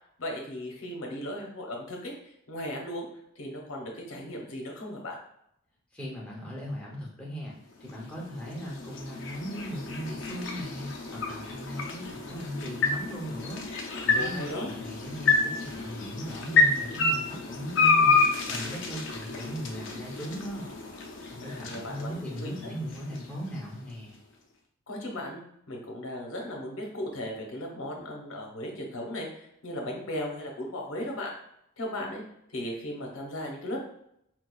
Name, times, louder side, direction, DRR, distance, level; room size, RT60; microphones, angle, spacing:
voice 1, 0.2-2.1 2.5-3.1 3.4-5.2 14.1-14.7 21.4-22.7 24.9-25.4 25.7-31.4 31.8-32.2 32.5-33.8, left 1 dB, 75° left, 0 dB, 0.8 m, -36 dB
voice 2, 5.9-13.6 14.0-18.2 18.5-20.7 21.3-24.1, equal, 5° left, -4 dB, 0.7 m, -38 dB
sound 1, 7.7-23.9, left 4 dB, 60° left, 0.5 m, -29 dB
4.7 x 2.3 x 2.3 m, 0.73 s
head